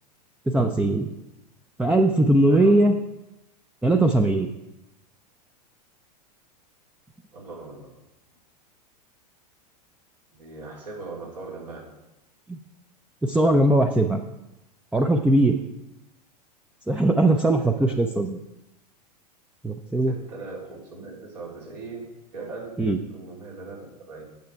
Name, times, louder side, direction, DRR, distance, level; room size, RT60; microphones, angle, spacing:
voice 1, 0.5-1.1 1.8-2.9 3.8-4.5 12.5-12.6 13.2-14.2 14.9-15.6 16.9-18.4 19.6-20.1 22.8-23.0, right 1 dB, 5° right, 5 dB, 0.5 m, -20 dB
voice 2, 2.5-2.8 7.3-8.0 10.3-11.9 17.6-18.0 20.0-22.7 23.1-24.2, right 3 dB, 75° right, -4 dB, 3.2 m, -39 dB
9.2 x 6.6 x 4.5 m, 0.95 s
hypercardioid pair, 100°, 21 cm